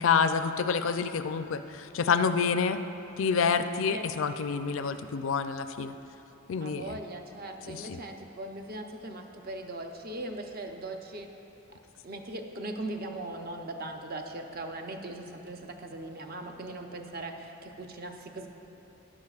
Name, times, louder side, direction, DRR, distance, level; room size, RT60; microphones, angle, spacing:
voice 1, 0.0-2.8 3.2-6.0 6.5-6.9 7.7-8.0, left 5 dB, 65° left, 9 dB, 0.4 m, -28 dB
voice 2, 6.6-11.3 11.7-18.5, right 2 dB, 45° right, 4 dB, 0.7 m, -39 dB
15.0 x 11.0 x 2.4 m, 2.9 s
head